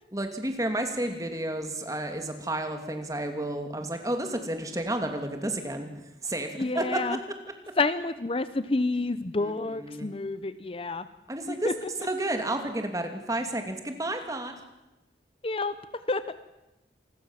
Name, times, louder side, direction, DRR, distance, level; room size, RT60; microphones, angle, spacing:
voice 1, 0.1-5.9 6.2-7.0 9.4-10.1 11.3-11.7 12.0-14.5, right 1 dB, 20° right, 6 dB, 2.8 m, -31 dB
voice 2, 6.6-7.2 7.8-11.1 11.5-11.9 15.4-15.8 16.1-16.2, left 3 dB, 30° left, 14 dB, 0.7 m, -29 dB
27.5 x 21.0 x 7.4 m, 0.99 s
head